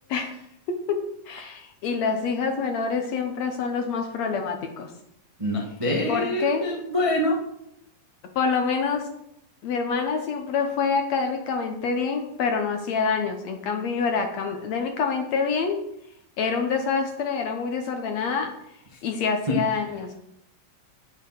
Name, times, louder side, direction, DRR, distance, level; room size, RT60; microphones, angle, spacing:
voice 1, 0.7-4.9 6.1-6.7 8.4-9.1 9.6-15.8 16.4-18.5 19.0-20.1, left 5 dB, 65° left, 5 dB, 1.8 m, -26 dB
voice 2, 5.4-7.4 19.5-19.6, left 1 dB, 30° right, -2 dB, 0.6 m, -25 dB
8.9 x 8.6 x 5.8 m, 0.78 s
omnidirectional pair, 3.9 m